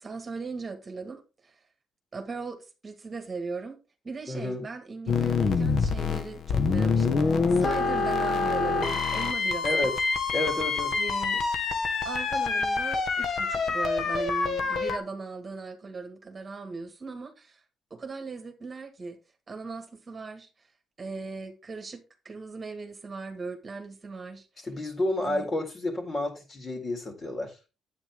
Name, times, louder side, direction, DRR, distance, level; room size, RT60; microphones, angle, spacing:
voice 1, 0.0-1.6 2.1-3.8 4.0-9.7 11.0-11.5 12.0-17.6 17.9-19.2 19.5-20.7 21.0-24.5 25.2-25.5, right 4 dB, 35° right, 2.0 m, -38 dB
voice 2, 4.3-4.6 9.6-9.9 10.3-11.0 24.7-27.5, left 1 dB, 35° left, 4.2 m, -30 dB
sound 1, 5.1-15.0, left 4 dB, 55° left, 1.6 m, -26 dB
9.7 x 8.7 x 3.7 m
cardioid pair, 90°, 0 cm